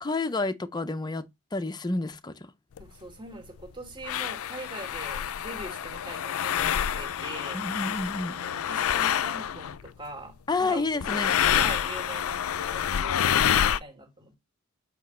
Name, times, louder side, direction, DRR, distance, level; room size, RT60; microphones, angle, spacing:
voice 1, 0.0-2.5 7.5-8.4 10.5-11.3, left 3 dB, 20° left, 0.5 m, -30 dB
sound 1, 2.8-2.9 3.6-3.7 4.0-9.9 11.0-13.8, left 9 dB, 65° left, 0.4 m, -27 dB
voice 2, 2.8-6.7 7.0-7.6 8.3-14.4, right 1 dB, 20° right, 2.2 m, -42 dB
8.0 x 5.0 x 3.1 m
head